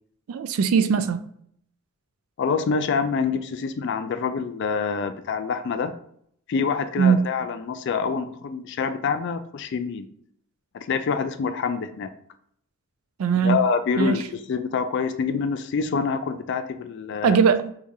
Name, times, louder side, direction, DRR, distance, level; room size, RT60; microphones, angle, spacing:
voice 1, 0.3-1.2 7.0-7.3 13.2-13.6 14.0-14.2 17.2-17.7, right 6 dB, 80° right, 0.3 m, -20 dB
voice 2, 2.4-5.9 6.5-10.1 10.7-12.1 13.4-17.4, left 5 dB, 55° left, 0.3 m, -26 dB
4.6 x 2.4 x 2.7 m
head